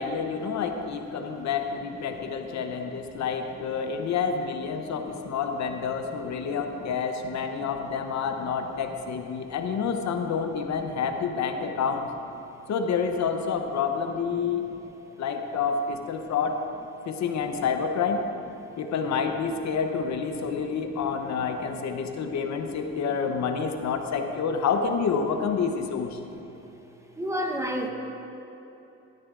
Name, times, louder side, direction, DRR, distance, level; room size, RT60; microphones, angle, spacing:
voice 1, 0.0-12.1 12.7-14.6 15.2-16.6 17.1-18.2 18.8-26.2, left 6 dB, 65° left, 5 dB, 0.8 m, -28 dB
voice 2, 4.8-5.1 6.5-6.6 7.6-7.7 8.4-8.5 9.5-9.6 10.3-10.4 14.5-14.9 20.6-20.7 22.0-22.3 22.8-22.9 26.3-26.4 27.2-27.9, equal, 10° right, 3 dB, 0.9 m, -35 dB
13.5 x 12.0 x 2.5 m, 3.0 s
cardioid pair, 90°, 30 cm